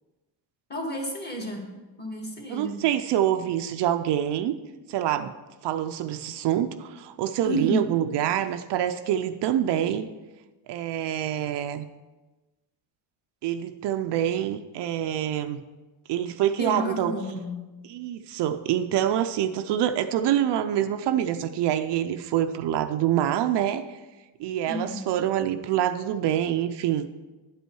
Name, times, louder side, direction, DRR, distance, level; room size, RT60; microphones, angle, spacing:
voice 1, 0.7-1.6 2.0-2.8 7.4-7.8 16.6-17.5 24.6-25.0, equal, 20° left, 0 dB, 1.8 m, -30 dB
voice 2, 2.5-4.5 4.9-5.3 5.6-10.1 10.7-11.9 13.4-15.6 16.1-17.1 17.9-24.0 24.4-27.1, right 11 dB, 55° right, 8 dB, 0.6 m, -26 dB
11.0 x 8.2 x 4.6 m, 1.2 s
cardioid pair, 170°, 49 cm